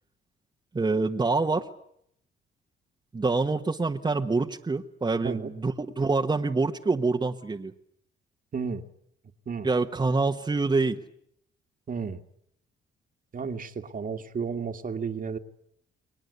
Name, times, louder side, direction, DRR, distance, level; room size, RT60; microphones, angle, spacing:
voice 1, 0.7-1.7 3.1-7.7 9.6-11.0, right 3 dB, 20° right, 3 dB, 1.4 m, -26 dB
voice 2, 8.5-8.8 9.5-9.7 11.9-12.2 13.3-15.4, right 5 dB, 45° right, 7 dB, 2.0 m, -32 dB
30.0 x 21.5 x 8.2 m, 0.71 s
cardioid pair, 90°, 20 cm